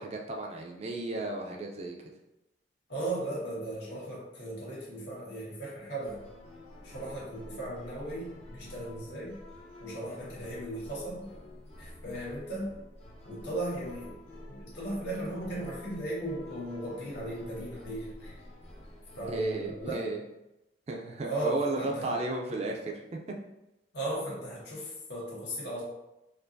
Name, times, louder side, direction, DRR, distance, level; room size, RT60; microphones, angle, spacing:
voice 1, 0.0-2.0 19.3-20.2 20.9-23.4, right 2 dB, 35° right, 0 dB, 0.4 m, -34 dB
voice 2, 2.9-6.2 6.8-9.4 9.8-11.3 11.8-12.7 13.2-14.2 14.5-18.4 19.2-20.0 21.2-22.2 23.9-25.8, right 1 dB, 80° left, -6 dB, 1.4 m, -37 dB
sound 1, 6.0-19.9, left 1 dB, 40° left, 0.7 m, -49 dB
4.4 x 2.5 x 2.6 m, 0.92 s
head